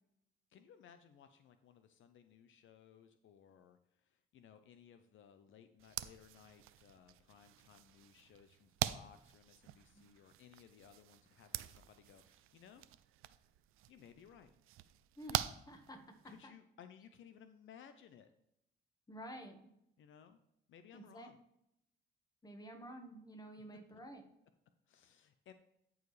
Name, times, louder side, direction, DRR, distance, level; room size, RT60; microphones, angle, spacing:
voice 1, 0.5-12.9 13.9-14.5 16.2-18.3 20.0-20.4 20.7-21.4 24.9-25.5, left 8 dB, 65° left, 9 dB, 0.6 m, -60 dB
sound 1, 5.8-16.4, right 13 dB, 80° right, 0.4 m, -45 dB
voice 2, 15.2-16.0 16.4-16.5 19.1-19.6 20.9-21.3 22.4-24.2, right 1 dB, 20° left, 5 dB, 1.4 m, -50 dB
13.5 x 4.7 x 3.2 m, 0.79 s
cardioid pair, 100°, 21 cm